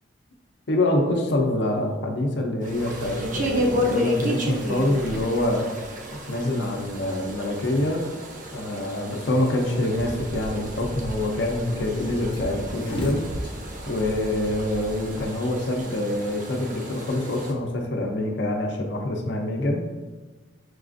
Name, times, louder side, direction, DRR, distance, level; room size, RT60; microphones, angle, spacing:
voice 1, 0.7-5.6 6.1-8.1 8.5-13.3 13.9-19.8, left 1 dB, 70° left, 2 dB, 0.6 m, -25 dB
sound 1, 2.6-17.5, equal, 45° right, 0.5 m, -32 dB
sound 2, 9.9-15.4, equal, 90° right, 0.6 m, -37 dB
sound 3, 11.9-17.0, equal, 30° left, 0.7 m, -38 dB
6.0 x 2.4 x 2.5 m, 1.3 s
head